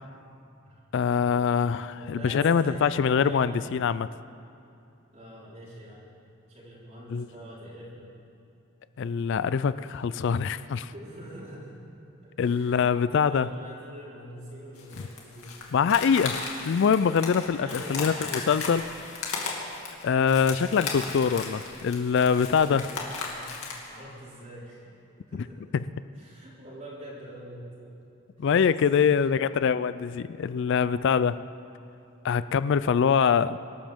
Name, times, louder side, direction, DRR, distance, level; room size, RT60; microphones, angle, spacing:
voice 1, 0.9-4.1 7.1-7.3 9.0-10.9 12.4-13.5 15.7-16.4 16.6-18.8 20.0-22.8 28.4-31.4 32.2-33.6, left 6 dB, 55° left, 15 dB, 0.3 m, -24 dB
voice 2, 2.0-3.7 5.1-6.1 6.5-8.1 10.9-11.8 12.4-15.5 17.6-18.7 22.6-23.5 23.9-24.9 25.3-25.6 26.1-28.0 28.4-28.5 28.9-29.2 30.9-31.3, equal, 35° right, -11 dB, 4.3 m, -44 dB
sound 1, 14.8-23.9, left 4 dB, 80° left, 2.4 m, -36 dB
25.0 x 13.0 x 3.6 m, 2.7 s
head